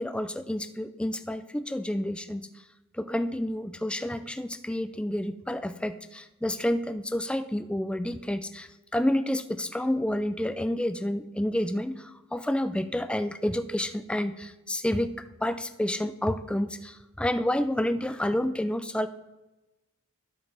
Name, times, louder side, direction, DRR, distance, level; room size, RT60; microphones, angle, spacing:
voice 1, 0.0-2.5 2.9-19.1, left 1 dB, 5° left, 10 dB, 0.3 m, -29 dB
12.5 x 6.1 x 3.4 m, 1.1 s
head